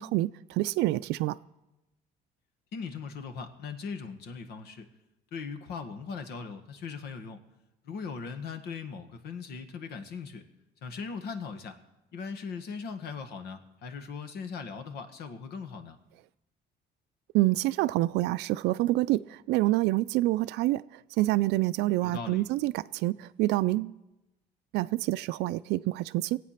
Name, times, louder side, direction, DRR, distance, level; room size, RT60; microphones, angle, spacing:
voice 1, 0.0-1.4 17.3-23.9 24.7-26.4, right 17 dB, 85° right, 0.4 m, -27 dB
voice 2, 2.7-4.9 5.3-7.4 7.8-10.4 10.8-11.8 12.1-16.0 22.0-22.4, left 5 dB, 75° left, 1.6 m, -39 dB
21.5 x 8.5 x 5.8 m
cardioid pair, 110°, 17 cm